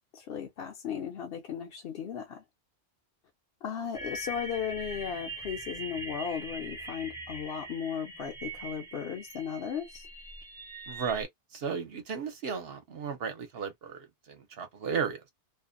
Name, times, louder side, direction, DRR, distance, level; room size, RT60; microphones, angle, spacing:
voice 1, 0.1-2.4 3.6-10.1, left 8 dB, 60° left, 0.8 m, -36 dB
sound 1, 3.9-11.2, right 1 dB, 5° right, 0.4 m, -42 dB
voice 2, 10.9-15.3, right 6 dB, 60° right, 0.9 m, -35 dB
2.5 x 2.1 x 2.5 m
omnidirectional pair, 1.2 m